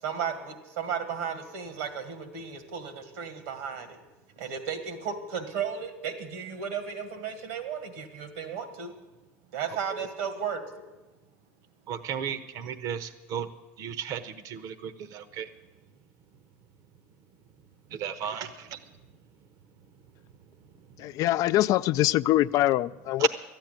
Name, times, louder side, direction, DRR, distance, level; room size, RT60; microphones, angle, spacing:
voice 1, 0.0-4.0 4.4-8.9 9.5-10.9, right 7 dB, 80° right, 9 dB, 2.0 m, -34 dB
voice 2, 11.9-13.5 13.8-15.5 17.9-18.9 20.8-21.2 23.2-23.3, right 8 dB, 60° right, 14 dB, 1.0 m, -34 dB
voice 3, 21.0-23.3, left 15 dB, 55° left, 14 dB, 0.4 m, -23 dB
13.0 x 9.1 x 9.2 m, 1.1 s
hypercardioid pair, 90°, 7 cm